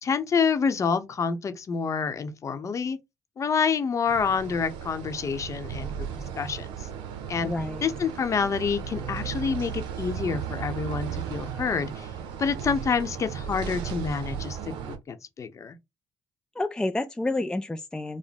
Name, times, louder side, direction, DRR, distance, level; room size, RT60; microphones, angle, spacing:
voice 1, 0.0-3.0 3.4-6.1 6.4-6.9 7.3-7.5 7.8-12.1 12.4-15.8, left 5 dB, 40° left, 0.8 m, -28 dB
sound 1, 4.1-15.0, right 8 dB, 80° right, 0.7 m, -35 dB
voice 2, 7.4-7.8 16.6-18.2, left 2 dB, 10° left, 0.4 m, -29 dB
5.0 x 2.1 x 3.4 m
supercardioid pair, 85°, 8 cm